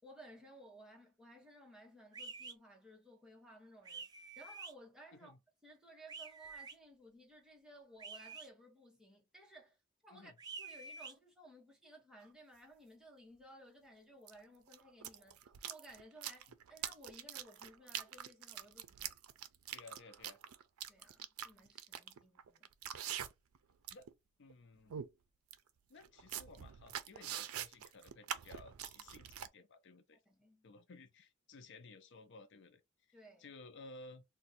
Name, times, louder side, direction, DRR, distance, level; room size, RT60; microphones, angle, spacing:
voice 1, 0.0-4.1 4.4-5.3 5.6-9.8 10.0-10.3 10.6-19.1 20.9-22.7 30.3-30.7 33.1-33.5, right 1 dB, 5° right, 0.9 m, -58 dB
sound 1, 2.1-2.5 3.8-4.7 6.1-6.7 8.0-8.5 10.4-11.1, right 4 dB, 20° right, 0.3 m, -48 dB
sound 2, 12.2-12.3 14.3-14.4 14.7-23.6 23.8-24.1 24.5-24.6 24.9-25.1 25.5-25.6 26.0-29.5, right 10 dB, 85° right, 0.4 m, -44 dB
voice 2, 19.7-20.4 23.9-24.1 24.4-25.0 25.9-30.2 30.6-34.2, left 3 dB, 55° left, 0.5 m, -56 dB
2.6 x 2.2 x 4.0 m
head